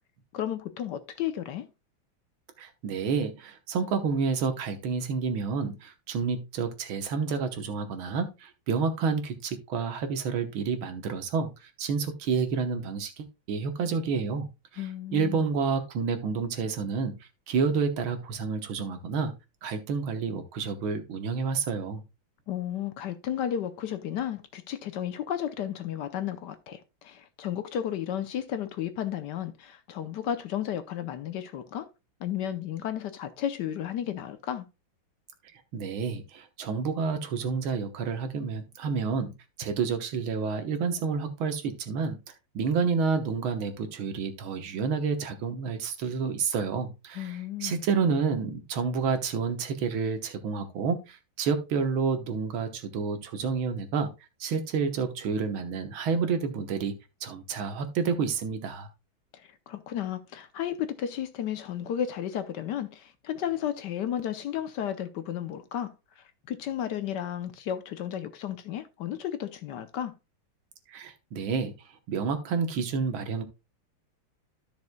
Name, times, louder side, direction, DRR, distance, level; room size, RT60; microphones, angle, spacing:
voice 1, 0.3-1.7 14.8-15.4 22.5-31.9 32.2-34.7 47.1-47.8 59.3-70.1, left 10 dB, 65° left, 1.2 m, -33 dB
voice 2, 2.6-14.5 14.7-17.1 17.5-19.3 19.6-22.0 35.7-39.3 39.6-42.2 42.5-54.1 54.4-56.9 57.2-58.9 70.9-71.7 72.1-73.4, right 5 dB, 90° right, 2.0 m, -29 dB
13.0 x 6.2 x 2.2 m
omnidirectional pair, 2.2 m